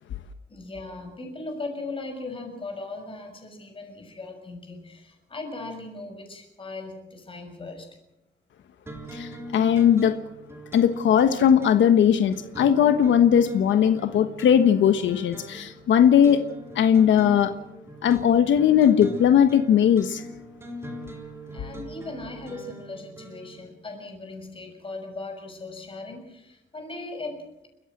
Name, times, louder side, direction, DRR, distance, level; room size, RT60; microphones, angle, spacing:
voice 1, 0.5-7.9 21.5-27.7, left 3 dB, 30° left, 5 dB, 6.1 m, -38 dB
sound 1, 8.9-23.6, equal, 15° right, 3.7 m, -40 dB
voice 2, 9.1-10.2 10.7-16.4 16.8-17.5 18.0-20.2, left 9 dB, 85° left, 8 dB, 1.3 m, -19 dB
30.0 x 14.5 x 7.8 m, 0.86 s
wide cardioid pair, 155°, 19 cm